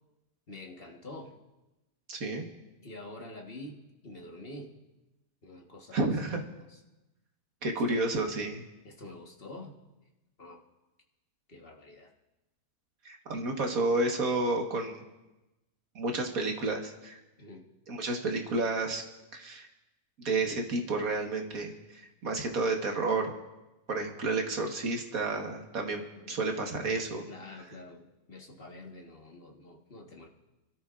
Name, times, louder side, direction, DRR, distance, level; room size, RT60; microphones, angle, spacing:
voice 1, 0.5-1.3 2.8-4.8 5.4-6.0 6.3-6.4 6.7-6.8 7.7-8.0 8.8-9.8 10.4-10.6 11.5-12.1 17.4-17.6 26.1-26.4 27.3-30.3, left 1 dB, 40° left, 1 dB, 1.6 m, -47 dB
voice 2, 2.1-2.5 5.9-6.4 7.6-8.6 13.1-15.0 16.0-17.2 17.9-19.0 19.3-19.7 20.2-23.3 23.9-26.0 26.3-27.3, right 3 dB, 65° right, 2 dB, 1.9 m, -31 dB
29.0 x 13.0 x 2.5 m, 1.0 s
omnidirectional pair, 1.6 m